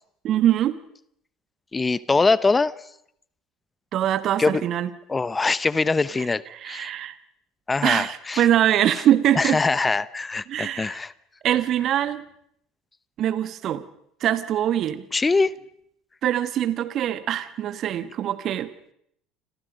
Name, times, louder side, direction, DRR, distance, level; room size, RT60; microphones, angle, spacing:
voice 1, 0.2-0.8 3.9-4.9 6.2-7.2 7.8-9.6 10.5-11.0 11.4-12.2 13.2-13.8 14.2-15.1 16.2-18.7, right 11 dB, 50° right, 1.4 m, -23 dB
voice 2, 1.7-2.7 4.4-4.6 5.1-6.9 7.7-8.4 9.4-11.1 15.1-15.5, left 3 dB, 20° left, 0.9 m, -23 dB
28.5 x 27.0 x 5.3 m
figure-of-eight pair, 65°, 0 cm